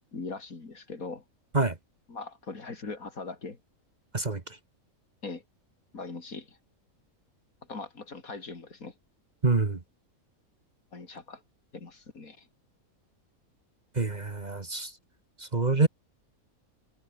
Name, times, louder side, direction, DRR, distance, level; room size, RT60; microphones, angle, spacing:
voice 1, 0.1-1.2 2.1-3.6 5.2-5.4 5.9-6.6 7.7-8.9 10.9-11.4 11.7-12.5, left 3 dB, 75° left, 3.6 m, -40 dB
voice 2, 9.4-9.8 14.0-14.9 15.5-15.9, right 3 dB, 30° right, 1.6 m, -26 dB
omnidirectional pair, 1.5 m